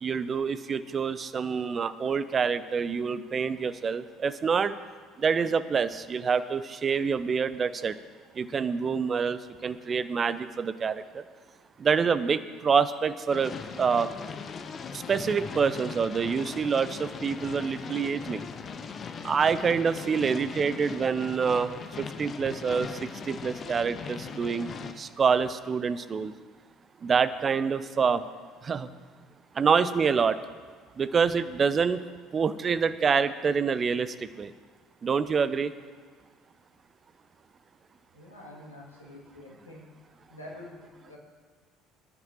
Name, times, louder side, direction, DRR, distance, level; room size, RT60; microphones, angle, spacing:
voice 1, 0.0-4.8 5.2-8.0 8.3-11.2 11.8-14.1 14.9-18.5 19.2-26.3 27.0-28.2 28.6-28.9 29.5-30.4 31.0-32.0 32.3-34.5 35.0-35.7, right 6 dB, 30° right, 14 dB, 0.5 m, -27 dB
sound 1, 13.3-24.9, left 5 dB, 35° left, 0.9 m, -39 dB
voice 2, 38.1-39.9 40.3-41.2, left 1 dB, 80° left, -3 dB, 2.1 m, -46 dB
20.5 x 10.5 x 2.9 m, 1.5 s
figure-of-eight pair, 60°, 0 cm